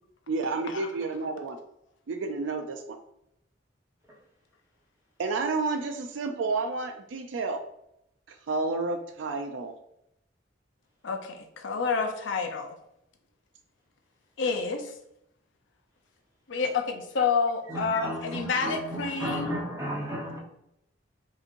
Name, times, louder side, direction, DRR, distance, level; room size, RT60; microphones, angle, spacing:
voice 1, 0.3-1.6 2.1-3.0 5.2-7.6 8.3-9.7, right 3 dB, 85° right, 6 dB, 0.4 m, -30 dB
voice 2, 11.0-12.7 14.4-14.9 16.5-19.5, left 5 dB, 85° left, 5 dB, 0.6 m, -29 dB
voice 3, 17.7-20.4, right 1 dB, 15° right, -3 dB, 1.0 m, -34 dB
4.9 x 2.9 x 2.6 m, 0.78 s
head